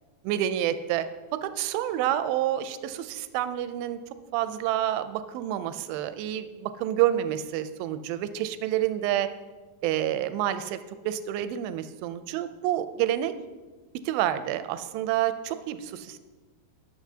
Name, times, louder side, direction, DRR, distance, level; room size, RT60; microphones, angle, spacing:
voice 1, 0.2-1.1 1.3-4.0 4.3-9.3 9.8-10.8 11.1-13.3 14.1-16.2, right 12 dB, 80° right, 11 dB, 2.2 m, -28 dB
18.0 x 6.8 x 2.8 m, 1.3 s
omnidirectional pair, 4.5 m